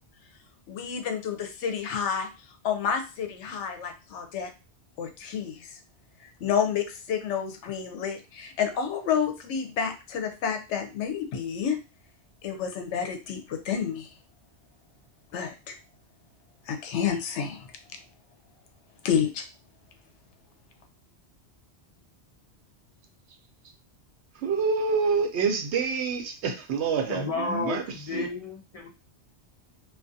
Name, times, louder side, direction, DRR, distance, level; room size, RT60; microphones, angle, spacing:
voice 1, 0.7-2.3 2.6-4.5 5.0-5.8 6.4-11.8 12.4-14.1 15.3-15.8 16.7-17.6 19.0-19.4, left 7 dB, 80° left, 0.9 m, -29 dB
voice 2, 24.4-27.8 28.1-28.3, right 5 dB, 75° right, 0.9 m, -27 dB
voice 3, 27.1-28.9, left 3 dB, 40° left, 0.5 m, -32 dB
2.4 x 2.4 x 2.6 m
omnidirectional pair, 1.2 m